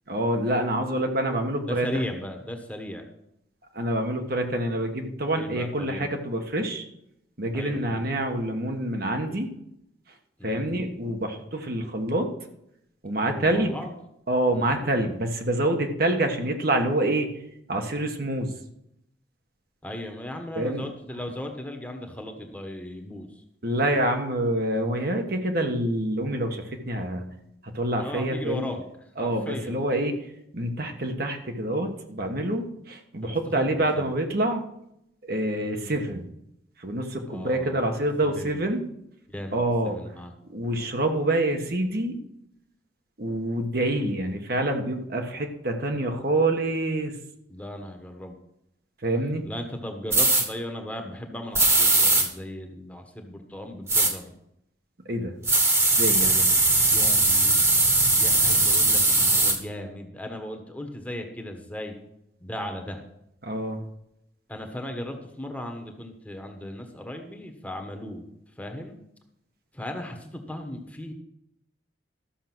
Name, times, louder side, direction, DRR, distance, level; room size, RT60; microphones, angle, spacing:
voice 1, 0.1-2.0 3.7-6.8 7.4-9.5 10.4-12.3 13.0-13.8 14.3-17.3 17.7-18.5 20.5-20.9 23.6-27.3 27.6-28.7 29.2-30.2 30.5-34.6 35.3-36.2 36.8-38.8 39.5-40.0 40.5-42.1 43.2-47.1 49.0-49.4 55.0-55.3 56.0-56.4 63.4-63.8, right 1 dB, 55° right, 4 dB, 1.3 m, -26 dB
voice 2, 1.7-3.0 5.4-6.1 7.5-8.0 10.4-10.7 13.3-13.9 14.5-14.7 19.8-23.3 28.0-28.8 29.2-29.8 33.2-34.1 35.6-36.0 37.3-37.8 38.3-38.6 39.3-40.3 47.5-48.3 49.4-54.3 56.3-57.7 58.1-61.9 62.4-63.0 64.5-68.3 68.6-69.0 69.8-71.1, left 1 dB, 10° left, 4 dB, 1.3 m, -37 dB
sound 1, 50.1-50.4 51.5-52.3 53.9-54.1 55.4-59.6, right 2 dB, 15° right, 1.3 m, -20 dB
13.0 x 6.5 x 6.1 m, 0.79 s
head